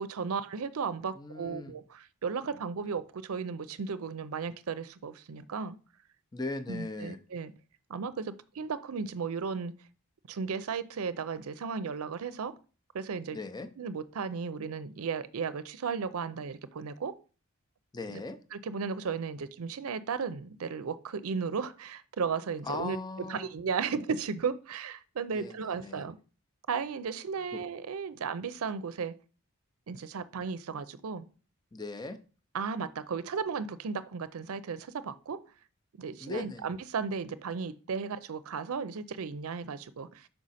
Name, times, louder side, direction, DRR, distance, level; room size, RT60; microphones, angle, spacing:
voice 1, 0.0-5.8 6.7-7.5 7.9-9.7 10.3-12.5 12.9-13.4 13.8-17.1 18.1-18.2 18.5-23.0 23.3-26.2 26.7-29.1 29.9-31.2 32.5-35.4 36.0-40.3, right 5 dB, 80° right, 0.5 m, -35 dB
voice 2, 1.1-1.7 6.3-7.2 13.3-13.7 17.9-18.4 22.6-23.5 25.3-26.0 27.5-27.6 31.7-32.2 36.2-36.7, left 3 dB, 20° left, 0.5 m, -38 dB
6.2 x 4.6 x 4.1 m
head